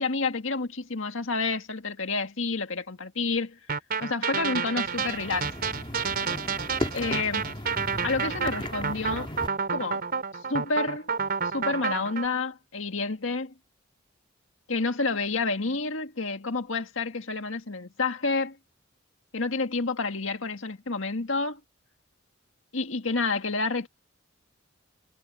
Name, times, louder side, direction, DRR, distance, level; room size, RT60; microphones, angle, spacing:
voice 1, 0.0-3.6 4.0-5.5 6.9-7.4 8.0-9.3 9.7-10.0 10.5-11.1 11.4-13.5 14.7-18.6 19.3-21.6 22.7-23.9, left 3 dB, 70° left, 1.9 m, -29 dB
sound 1, 3.7-12.2, right 5 dB, 50° right, 4.9 m, -30 dB
sound 2, 4.8-9.5, left 1 dB, 25° left, 3.1 m, -36 dB
head